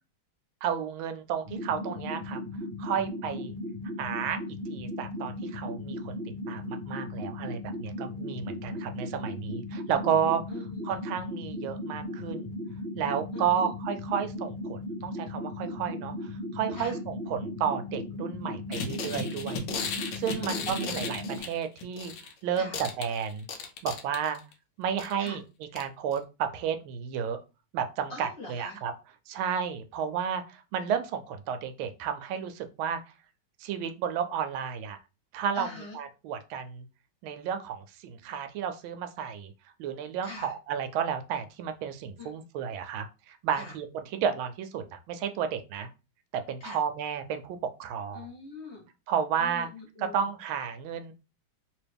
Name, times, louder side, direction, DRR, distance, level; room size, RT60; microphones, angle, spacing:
voice 1, 0.6-2.4 2.8-3.5 4.0-4.4 4.7-6.2 6.5-10.4 10.8-12.5 13.0-19.6 20.1-22.1 22.4-23.5 23.8-24.4 24.8-25.4 25.7-27.4 27.7-28.9 29.3-33.0 33.6-35.0 35.3-35.7 35.9-36.9 37.2-39.5 39.8-45.9 46.3-48.3 49.1-49.7 50.0-51.1, right 8 dB, 85° right, 8 dB, 1.4 m, -32 dB
sound 1, 1.4-21.4, left 1 dB, 40° right, 0.8 m, -37 dB
voice 2, 10.5-11.0 13.3-13.7 16.7-17.0 20.3-21.0 22.5-22.8 25.2-25.4 28.1-28.8 35.5-36.0 40.2-40.5 42.2-42.3 43.5-43.7 46.6-46.8 48.1-48.8 49.4-50.2, left 3 dB, 40° left, -4 dB, 1.3 m, -43 dB
sound 2, 18.7-22.3 22.6-24.5 25.0-25.3 25.8-25.9 26.1-26.2, left 5 dB, 70° left, 1.3 m, -35 dB
3.1 x 3.0 x 3.4 m, 0.29 s
omnidirectional pair, 2.2 m